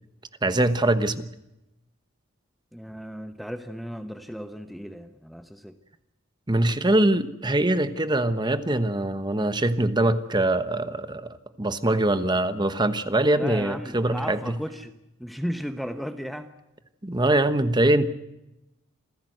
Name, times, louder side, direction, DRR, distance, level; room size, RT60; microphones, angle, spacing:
voice 1, 0.4-1.3 6.5-14.6 17.0-18.1, right 1 dB, 20° right, 11 dB, 1.1 m, -23 dB
voice 2, 2.7-5.8 13.3-14.9 15.2-16.5, equal, ahead, 8 dB, 1.0 m, -35 dB
27.5 x 15.5 x 7.9 m, 0.92 s
head